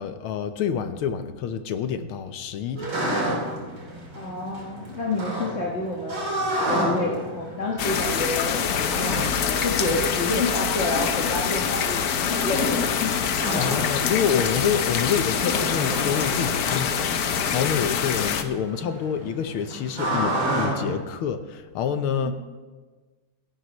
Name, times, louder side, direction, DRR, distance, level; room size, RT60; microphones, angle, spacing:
voice 1, 0.0-2.9 13.5-22.3, left 7 dB, 80° left, 9 dB, 1.8 m, -27 dB
sound 1, 2.8-21.0, right 1 dB, 65° right, 3.7 m, -32 dB
voice 2, 4.1-6.2 6.6-12.9 22.2-22.3, left 2 dB, 35° left, -3 dB, 1.4 m, -29 dB
sound 2, 7.8-18.4, left 7 dB, 60° left, 1.1 m, -25 dB
25.0 x 11.5 x 3.1 m, 1.3 s
omnidirectional pair, 2.3 m